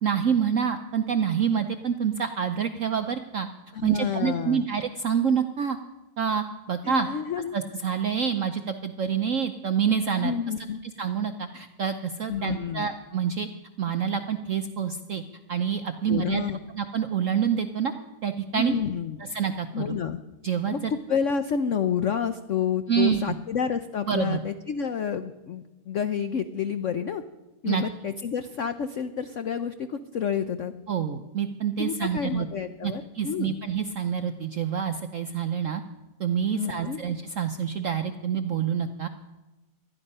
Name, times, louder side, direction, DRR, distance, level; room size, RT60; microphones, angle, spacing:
voice 1, 0.0-3.5 3.8-5.8 6.2-7.1 7.5-10.3 11.0-13.5 13.8-15.2 15.5-16.4 16.8-17.9 18.2-18.8 19.2-20.0 20.4-20.9 22.9-23.3 24.1-24.4 27.7-27.8 30.9-32.5 32.8-35.8 36.2-39.1, right 7 dB, 70° right, 8 dB, 0.7 m, -27 dB
voice 2, 3.7-4.7 6.8-7.6 10.2-10.8 12.3-12.9 16.1-16.6 18.5-19.2 19.7-20.2 20.7-27.2 27.6-30.7 31.8-33.6 36.5-37.0, left 7 dB, 85° left, 10 dB, 0.6 m, -29 dB
20.0 x 13.0 x 5.5 m, 1.1 s
omnidirectional pair, 2.2 m